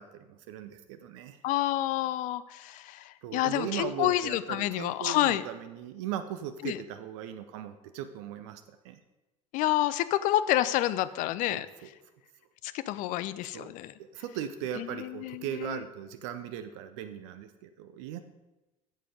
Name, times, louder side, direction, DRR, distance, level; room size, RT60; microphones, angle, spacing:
voice 1, 0.0-1.4 3.2-9.0 11.5-11.9 13.5-13.7 14.1-18.2, right 10 dB, 55° right, 10 dB, 0.6 m, -38 dB
voice 2, 1.4-5.4 6.6-6.8 9.5-11.7 12.6-13.9 14.8-15.8, left 14 dB, 45° left, 15 dB, 0.5 m, -29 dB
9.1 x 7.5 x 5.1 m, 1.1 s
figure-of-eight pair, 65°, 18 cm